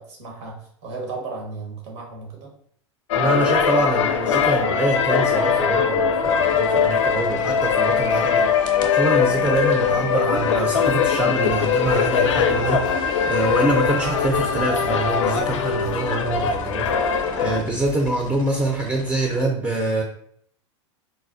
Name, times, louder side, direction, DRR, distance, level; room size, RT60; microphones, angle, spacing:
voice 1, 0.0-2.5, right 3 dB, 75° right, -1 dB, 1.2 m, -35 dB
sound 1, 3.1-17.6, left 7 dB, 85° left, 0.4 m, -21 dB
voice 2, 3.1-20.0, right 2 dB, 15° right, 1 dB, 0.5 m, -25 dB
sound 2, 6.2-19.5, left 2 dB, 30° left, 0.6 m, -42 dB
sound 3, 10.4-18.4, right 6 dB, 50° right, 0.8 m, -40 dB
4.0 x 2.2 x 2.5 m, 0.65 s
hypercardioid pair, 100°, 15 cm